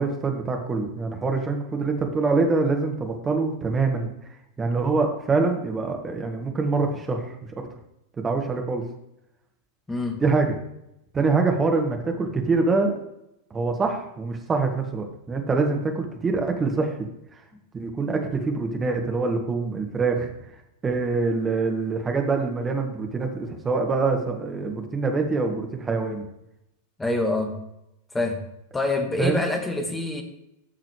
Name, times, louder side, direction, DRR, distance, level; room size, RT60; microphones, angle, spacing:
voice 1, 0.0-4.1 4.6-7.2 8.2-8.8 10.2-10.5 11.1-12.9 13.5-16.9 17.7-20.3 20.8-26.2 29.2-29.4, right 4 dB, 20° right, 3 dB, 1.6 m, -24 dB
voice 2, 9.9-10.2 27.0-27.6 28.1-28.4 28.7-30.2, left 2 dB, 10° left, 4 dB, 1.5 m, -26 dB
13.0 x 6.7 x 3.3 m, 0.83 s
figure-of-eight pair, 90°, 0 cm